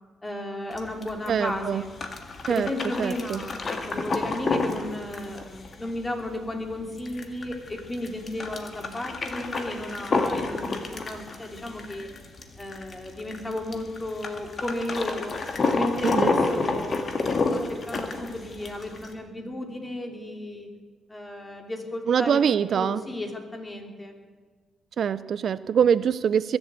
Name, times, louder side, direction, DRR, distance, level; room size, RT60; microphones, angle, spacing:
voice 1, 0.2-1.9 2.5-12.1 12.6-15.4 15.7-17.2 17.5-20.7 21.1-24.1, left 1 dB, 20° left, 3 dB, 3.0 m, -34 dB
sound 1, 0.7-19.1, left 3 dB, 40° left, 1.9 m, -30 dB
voice 2, 1.3-1.8 2.5-2.7 3.0-3.4 16.0-16.3 22.1-23.0 25.0-26.6, right 8 dB, 60° right, 16 dB, 0.4 m, -23 dB
22.0 x 7.9 x 8.2 m, 1.4 s
cardioid pair, 90°, 0 cm